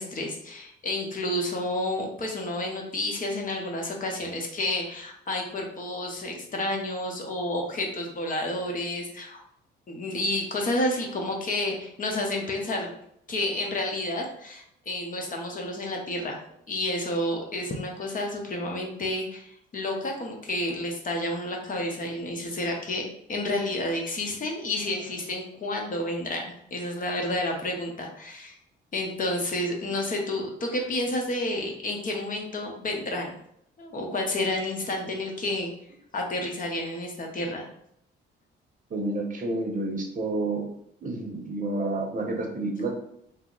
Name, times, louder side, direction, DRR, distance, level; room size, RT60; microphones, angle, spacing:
voice 1, 0.0-9.4 9.9-12.9 13.3-16.4 16.7-26.4 26.7-28.6 28.9-33.4 33.8-35.7 36.1-37.7, left 1 dB, 45° left, 1 dB, 0.8 m, -30 dB
voice 2, 38.9-40.7 41.0-43.0, right 2 dB, 40° right, 2 dB, 0.7 m, -29 dB
2.8 x 2.0 x 3.7 m, 0.73 s
cardioid pair, 90°, 20 cm